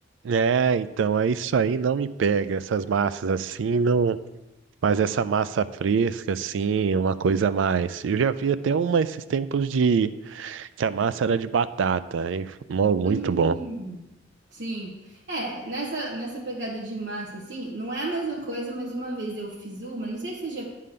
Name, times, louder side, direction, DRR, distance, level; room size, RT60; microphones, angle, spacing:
voice 1, 0.2-4.2 4.8-13.6, right 6 dB, 80° right, 15 dB, 0.4 m, -24 dB
voice 2, 13.0-14.0 14.5-20.6, right 2 dB, 65° right, -5 dB, 1.2 m, -33 dB
9.4 x 3.8 x 6.6 m, 1.0 s
head